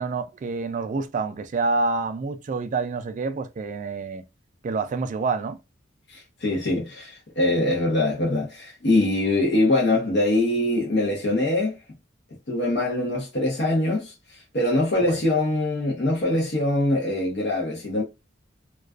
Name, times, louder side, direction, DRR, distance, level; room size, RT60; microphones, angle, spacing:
voice 1, 0.0-4.2 4.6-5.6 15.0-15.2, right 4 dB, 40° right, 0.3 m, -27 dB
voice 2, 6.1-11.7 12.5-18.0, left 1 dB, 60° left, 0.8 m, -23 dB
2.3 x 2.3 x 2.3 m
head